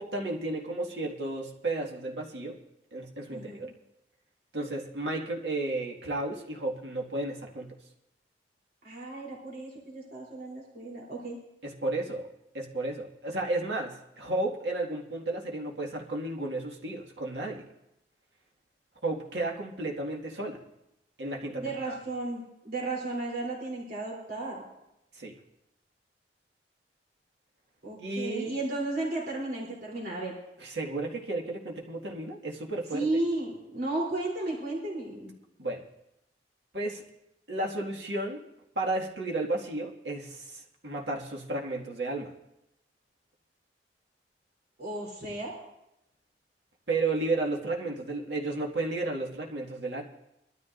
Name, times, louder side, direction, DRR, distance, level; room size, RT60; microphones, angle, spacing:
voice 1, 0.0-2.6 2.9-3.7 4.5-7.7 11.6-12.3 12.5-17.6 19.0-20.6 21.2-22.0 25.1-25.3 28.0-28.6 30.6-33.0 35.6-35.8 36.7-37.0 37.5-38.4 38.8-42.3 46.9-50.0, right 2 dB, 80° right, -1 dB, 2.1 m, -33 dB
voice 2, 3.3-3.7 8.8-11.4 21.5-24.6 27.8-30.3 32.9-35.3 44.8-45.5, right 2 dB, 60° right, -4 dB, 3.5 m, -34 dB
22.0 x 13.0 x 2.6 m, 0.86 s
head